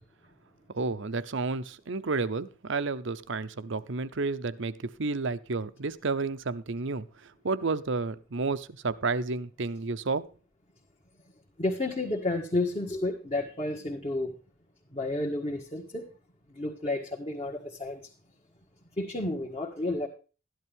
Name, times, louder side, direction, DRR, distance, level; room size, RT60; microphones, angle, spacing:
voice 1, 0.7-7.1 7.4-10.3, right 3 dB, 60° right, 0.7 m, -31 dB
voice 2, 11.6-14.3 14.9-16.1 16.5-18.1 19.0-20.1, left 2 dB, 30° left, 1.7 m, -31 dB
13.0 x 11.0 x 3.5 m
head